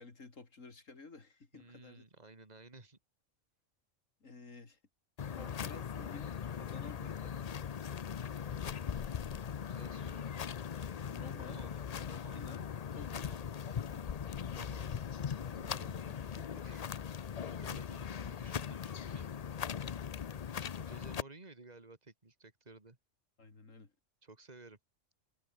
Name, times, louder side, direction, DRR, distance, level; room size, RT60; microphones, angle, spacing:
voice 1, 0.0-2.0 4.2-4.8 5.3-7.5 11.1-11.6 11.9-12.6 12.9-13.4 13.7-14.2 14.5-15.0 15.5-16.6 23.4-23.9, left 3 dB, 75° left, 3.4 m, -53 dB
voice 2, 1.5-3.0 9.6-10.3 11.4-11.8 12.1-12.4 13.1-13.4 14.5-14.9 16.6-16.9 17.5-19.3 20.8-23.0 24.2-24.8, right 3 dB, 30° right, 2.7 m, -55 dB
sound 1, 5.2-21.2, left 7 dB, 45° left, 0.5 m, -40 dB
omnidirectional pair, 1.3 m